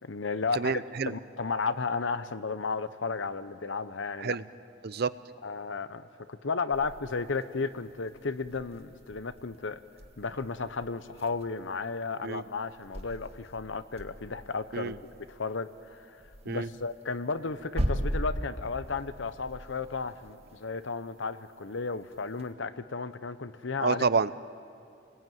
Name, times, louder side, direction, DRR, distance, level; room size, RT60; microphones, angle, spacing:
voice 1, 0.0-0.7 1.1-4.4 5.4-9.8 10.2-15.0 15.3-16.2 16.4-24.0, left 4 dB, 75° left, 12 dB, 0.8 m, -34 dB
voice 2, 0.6-1.1 4.2-4.4 4.8-5.1 12.2-12.4 14.7-15.0 16.5-16.7 23.8-24.3, right 5 dB, 55° right, 16 dB, 0.6 m, -28 dB
sound 1, 6.7-22.5, equal, 35° right, 1.8 m, -40 dB
28.5 x 20.5 x 9.3 m, 2.5 s
head